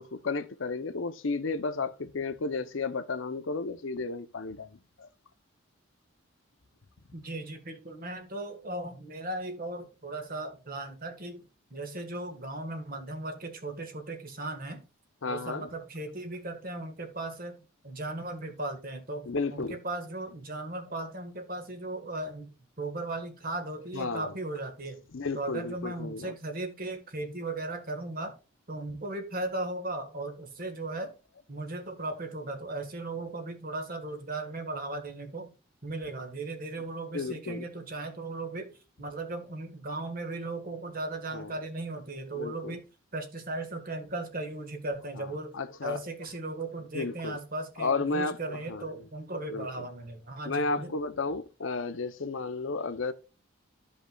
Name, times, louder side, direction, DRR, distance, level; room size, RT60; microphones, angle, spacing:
voice 1, 0.0-5.1 15.2-15.7 19.3-19.8 23.9-24.3 25.1-26.3 37.1-37.6 41.3-41.5 42.3-42.8 45.2-45.3 45.5-46.0 46.9-47.4 47.8-48.8 49.5-49.7 50.5-53.1, left 3 dB, 70° left, 0.7 m, -33 dB
voice 2, 7.1-11.4 11.7-14.8 15.3-22.5 22.8-25.0 25.3-28.3 28.7-31.1 31.5-35.5 35.8-38.7 39.0-42.9 43.1-50.9, right 2 dB, 45° right, 1.6 m, -37 dB
13.5 x 5.2 x 2.3 m
head